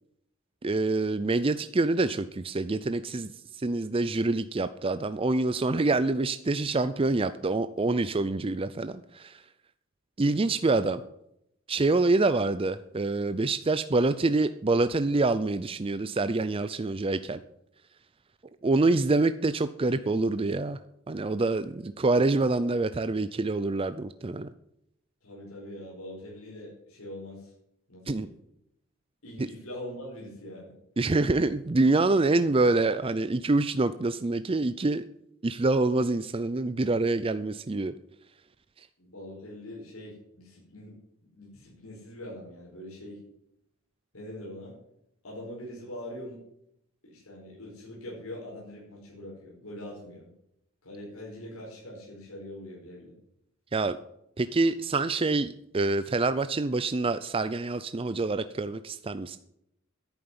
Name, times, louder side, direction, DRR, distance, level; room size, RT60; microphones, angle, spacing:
voice 1, 0.6-3.3 3.5-9.4 10.2-11.0 11.7-17.4 18.6-20.8 21.1-24.5 28.1-28.3 29.4-29.5 31.0-35.0 35.4-37.9 38.8-38.9 53.7-54.0 54.4-59.4, right 3 dB, 25° right, 12 dB, 0.5 m, -26 dB
voice 2, 25.2-27.5 27.9-28.3 29.2-30.7 39.0-41.0 41.3-43.2 44.1-44.8 45.2-46.4 47.0-50.3 50.8-53.1, left 1 dB, 85° left, -4 dB, 4.9 m, -43 dB
10.5 x 8.8 x 9.7 m, 0.79 s
head